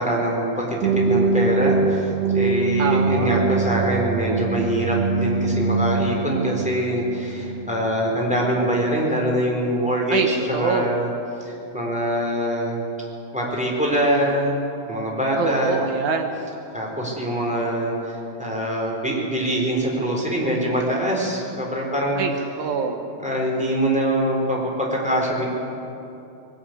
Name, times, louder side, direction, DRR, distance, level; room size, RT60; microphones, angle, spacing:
voice 1, 0.0-11.1 11.4-12.8 13.3-14.6 14.9-15.7 16.7-17.9 18.4-22.2 23.2-25.4, right 1 dB, ahead, -3 dB, 3.8 m, -24 dB
sound 1, 0.8-8.7, right 3 dB, 85° right, 2.8 m, -23 dB
voice 2, 2.8-3.4 10.1-11.0 15.4-16.3 22.2-23.0, right 5 dB, 70° right, 5 dB, 1.9 m, -25 dB
21.5 x 13.5 x 9.6 m, 2.8 s
omnidirectional pair, 4.5 m